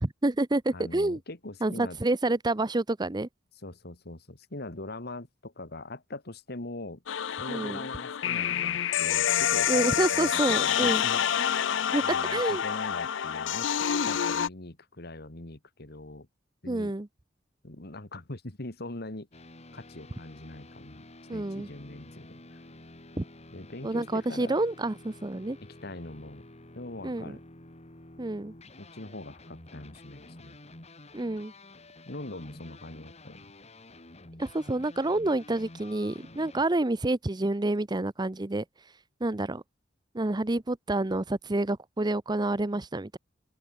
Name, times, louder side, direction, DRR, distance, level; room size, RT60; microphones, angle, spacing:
voice 1, 0.0-1.2 1.6-3.3 7.5-7.9 9.7-11.0 11.9-12.0 12.3-12.6 16.7-17.1 21.3-21.7 23.2-23.3 23.8-25.6 27.0-27.4 28.2-28.5 31.1-31.5 34.4-38.6 39.2-39.6 40.1-43.2, right 2 dB, 25° right, 0.8 m, -28 dB
voice 2, 0.7-2.0 3.6-7.0 7.4-11.2 12.0-16.3 16.6-16.9 17.6-19.3 19.7-21.0 21.3-22.6 23.5-24.6 25.8-26.4 26.7-27.4 28.8-30.6 32.1-33.5, left 2 dB, 60° left, 2.2 m, -42 dB
sound 1, 7.1-14.5, left 9 dB, 85° left, 0.5 m, -27 dB
sound 2, 19.3-36.6, left 2 dB, 35° left, 2.9 m, -50 dB
open air
head